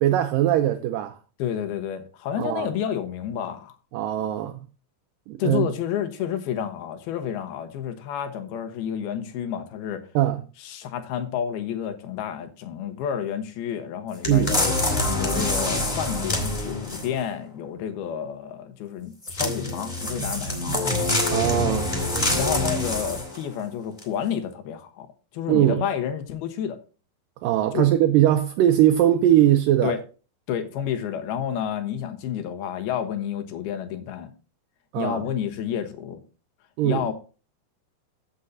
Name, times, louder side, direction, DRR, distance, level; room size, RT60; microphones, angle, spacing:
voice 1, 0.0-1.1 2.4-2.7 3.9-4.6 5.3-5.7 10.2-10.4 14.3-14.5 21.3-21.9 25.5-25.8 27.4-29.9 34.9-35.2 36.8-37.1, right 12 dB, 75° right, 2.2 m, -20 dB
voice 2, 1.4-3.8 5.4-10.0 10.6-14.8 15.2-20.8 22.4-25.1 25.3-26.8 27.7-27.9 29.8-30.0 30.5-34.3 35.0-36.2 36.8-37.1, left 9 dB, 85° left, 3.2 m, -30 dB
sound 1, 14.2-17.2 19.2-23.4 24.0-24.1, left 2 dB, 15° left, 1.8 m, -26 dB
14.5 x 7.4 x 2.7 m
omnidirectional pair, 4.3 m